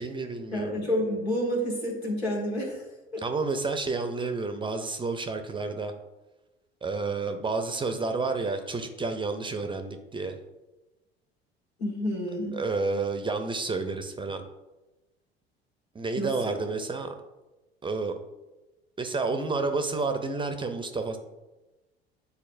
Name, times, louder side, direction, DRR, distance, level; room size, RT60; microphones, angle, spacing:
voice 1, 0.0-0.8 3.2-5.9 6.8-10.4 12.5-14.4 15.9-17.2 17.8-18.1 19.0-21.2, right 3 dB, 15° right, 7 dB, 0.6 m, -30 dB
voice 2, 0.5-2.8 3.1-3.2 11.8-12.6 16.1-16.6, equal, 85° left, -2 dB, 1.4 m, -29 dB
9.5 x 4.1 x 2.6 m, 1.1 s
figure-of-eight pair, 65°, 32 cm